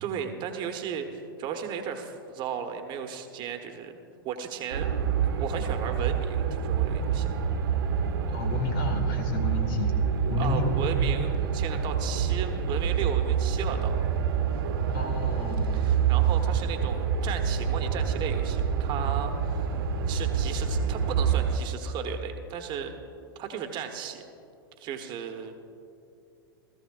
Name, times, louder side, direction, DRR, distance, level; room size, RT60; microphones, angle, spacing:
voice 1, 0.0-3.9 4.2-4.9 5.4-7.4 10.3-13.9 15.7-19.7 20.1-22.9 23.3-24.2 24.8-25.6, right 7 dB, 40° right, 5 dB, 1.2 m, -35 dB
sound 1, 4.7-21.6, right 7 dB, 70° right, 1.1 m, -27 dB
voice 2, 8.3-10.0 10.3-10.8 14.9-15.8, left 4 dB, 65° left, 4 dB, 2.1 m, -31 dB
17.5 x 14.0 x 2.5 m, 2.6 s
hypercardioid pair, 110°, 12 cm